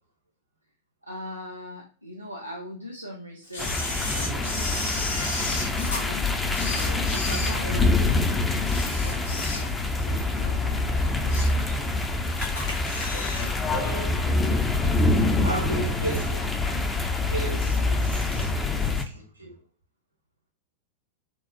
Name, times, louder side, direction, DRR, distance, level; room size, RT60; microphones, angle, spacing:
voice 1, 1.0-6.3 6.7-8.7 9.0-12.0, equal, 90° left, 0.4 m, -41 dB
Camera, 3.5-6.0 6.5-8.1 8.6-10.0 10.3-10.5 11.0-11.6 12.0-12.1 12.4-13.5 13.8-13.9, left 2 dB, 70° left, 0.8 m, -33 dB
sound 1, 3.6-19.0, left 2 dB, 10° left, 0.4 m, -25 dB
voice 2, 13.1-14.5 15.3-16.5 17.3-19.6, right 2 dB, 80° right, 0.9 m, -35 dB
4.4 x 2.0 x 2.6 m
figure-of-eight pair, 90°, 0 cm